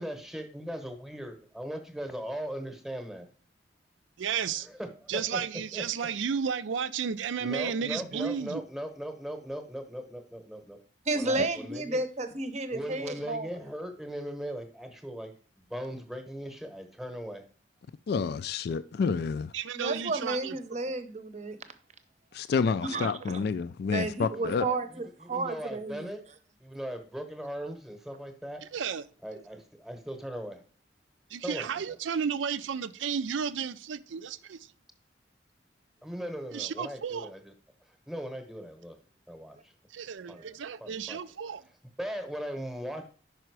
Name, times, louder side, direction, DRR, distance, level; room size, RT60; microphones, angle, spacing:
voice 1, 0.0-3.3 4.4-5.4 5.7-6.1 7.4-10.8 11.1-12.0 12.7-17.4 24.4-26.2 26.6-28.6 29.2-30.6 31.4-32.0 36.0-37.5 37.9-39.0 39.3-39.7 40.3-41.2 41.7-43.1, equal, ahead, 0.9 m, -39 dB
voice 2, 4.2-4.7 5.1-8.6 19.5-20.6 23.0-23.1 28.7-29.0 31.3-34.6 36.5-37.3 39.9-41.6, right 7 dB, 80° right, 0.4 m, -32 dB
voice 3, 11.1-13.5 19.7-21.6 22.9-23.4 23.9-26.1 40.3-40.6, right 2 dB, 35° right, 0.7 m, -32 dB
voice 4, 18.1-19.5 22.3-24.7, left 5 dB, 55° left, 0.3 m, -29 dB
5.6 x 5.0 x 4.6 m
head